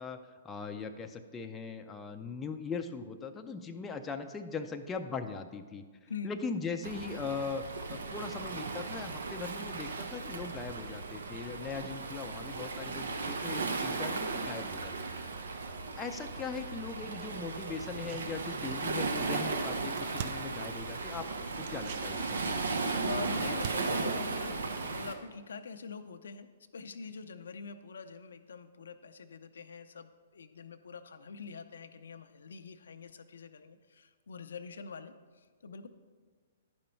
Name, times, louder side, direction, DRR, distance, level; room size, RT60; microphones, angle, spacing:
voice 1, 0.0-5.8 6.2-7.6 7.9-14.9 16.0-21.3 21.6-22.6, left 5 dB, 15° left, 5 dB, 0.5 m, -40 dB
Waves surf, 6.8-25.1, right 3 dB, 85° right, 0.8 m, -36 dB
sound 1, 17.9-19.0 19.3-19.4 19.6-21.2 21.6-25.3 25.6-25.7, right 8 dB, 45° right, 0.4 m, -47 dB
voice 2, 23.0-26.5 26.7-35.9, left 5 dB, 85° left, 8 dB, 0.5 m, -44 dB
10.5 x 5.2 x 4.4 m, 1.5 s
hypercardioid pair, 140°, 0 cm